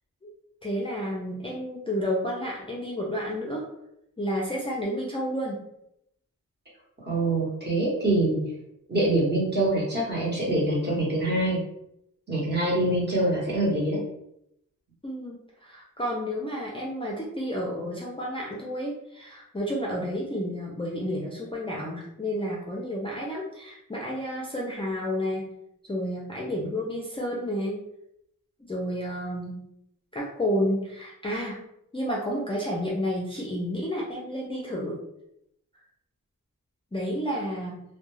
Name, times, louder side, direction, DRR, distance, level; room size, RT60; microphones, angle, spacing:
voice 1, 0.6-3.7 4.2-5.6 15.0-25.5 25.8-27.8 28.7-29.6 30.1-31.6 31.9-35.0 36.9-37.8, equal, 15° left, -4 dB, 0.4 m, -31 dB
voice 2, 7.0-8.4 8.9-11.6 12.3-14.0, right 1 dB, 30° right, -5 dB, 1.0 m, -25 dB
2.2 x 2.2 x 3.0 m, 0.78 s
wide cardioid pair, 115°, 33 cm